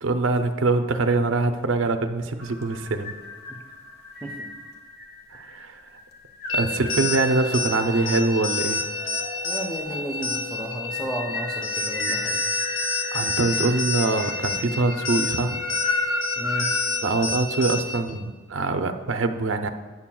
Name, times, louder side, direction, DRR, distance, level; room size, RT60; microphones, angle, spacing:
voice 1, 0.0-3.1 5.3-5.8 6.5-8.8 13.1-15.6 17.0-19.7, right 3 dB, 70° right, 7 dB, 0.5 m, -24 dB
sound 1, 2.4-16.9, left 3 dB, 50° left, 0.9 m, -35 dB
sound 2, 6.5-18.1, left 3 dB, 85° left, 1.0 m, -29 dB
voice 2, 9.4-12.5 16.4-16.7, right 1 dB, 5° left, -1 dB, 0.5 m, -33 dB
9.4 x 7.2 x 2.3 m, 1.4 s
head